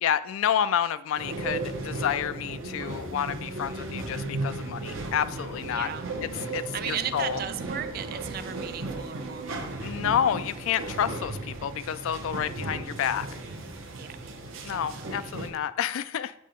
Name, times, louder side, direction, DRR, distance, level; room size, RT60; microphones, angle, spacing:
voice 1, 0.0-5.9 6.5-7.4 9.8-13.3 14.6-16.3, left 9 dB, 75° left, 14 dB, 0.3 m, -29 dB
sound 1, 1.2-15.5, right 2 dB, 70° right, 0.8 m, -35 dB
voice 2, 5.7-6.1 6.7-9.9 13.9-14.3 14.7-15.3, right 9 dB, 45° right, 11 dB, 0.3 m, -36 dB
7.4 x 2.8 x 5.1 m, 0.80 s
head